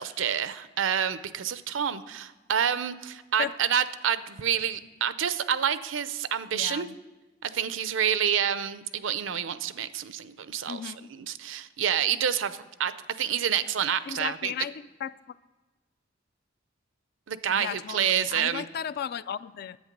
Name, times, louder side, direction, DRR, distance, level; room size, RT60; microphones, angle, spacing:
voice 1, 0.0-6.9 7.4-14.5 17.3-18.7, right 8 dB, 75° right, 14 dB, 0.5 m, -28 dB
voice 2, 6.5-7.0 10.7-11.1 14.1-15.4 17.5-19.8, left 8 dB, 55° left, 16 dB, 0.3 m, -35 dB
10.5 x 8.3 x 5.2 m, 1.2 s
head